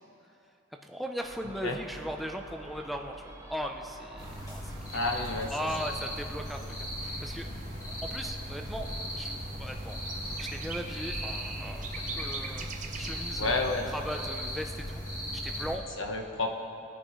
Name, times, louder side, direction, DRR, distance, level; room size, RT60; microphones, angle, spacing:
voice 1, 0.8-4.7 5.5-7.5 8.0-8.9 9.2-9.3 9.6-10.0 10.4-13.6 13.9-15.8, equal, ahead, 2 dB, 0.6 m, -38 dB
Gull seagull, 1.2-7.1, right 1 dB, 15° right, 1.3 m, -49 dB
voice 2, 1.4-1.8 4.9-5.5 13.4-13.9 16.0-16.5, left 3 dB, 75° left, 2 dB, 1.2 m, -30 dB
sound 1, 4.2-15.8, equal, 20° left, 1.7 m, -37 dB
sound 2, 7.0-13.1, right 4 dB, 40° right, 0.8 m, -43 dB
19.5 x 9.8 x 3.2 m, 2.8 s
head